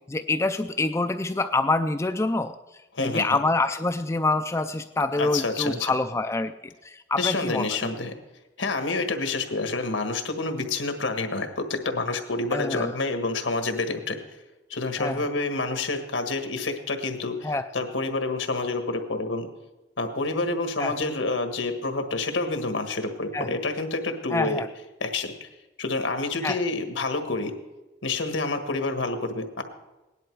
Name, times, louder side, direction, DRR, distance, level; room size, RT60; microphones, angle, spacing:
voice 1, 0.1-2.6 3.0-6.5 6.8-7.7 12.5-12.9 15.0-15.2 17.4-17.6 20.8-20.9 23.3-23.5 24.3-24.7 26.4-26.6, left 2 dB, 15° left, 8 dB, 0.3 m, -26 dB
voice 2, 2.9-3.4 5.2-5.9 7.2-8.1 8.6-14.2 14.7-19.5 20.0-24.6 25.0-25.5 25.8-27.5 28.0-29.6, left 3 dB, 85° left, 6 dB, 1.6 m, -28 dB
17.5 x 11.0 x 4.7 m, 1.1 s
head